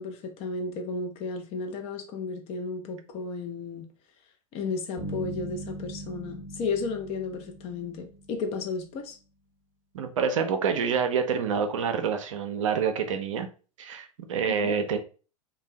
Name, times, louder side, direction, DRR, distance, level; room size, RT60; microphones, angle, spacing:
voice 1, 0.0-3.9 4.5-9.2 14.5-14.8, left 4 dB, 35° left, 0.7 m, -33 dB
sound 1, 5.0-8.7, right 1 dB, 55° left, 1.1 m, -40 dB
voice 2, 9.9-13.5 13.8-15.0, right 6 dB, 60° right, 0.5 m, -27 dB
2.5 x 2.3 x 3.2 m
figure-of-eight pair, 90°, 18 cm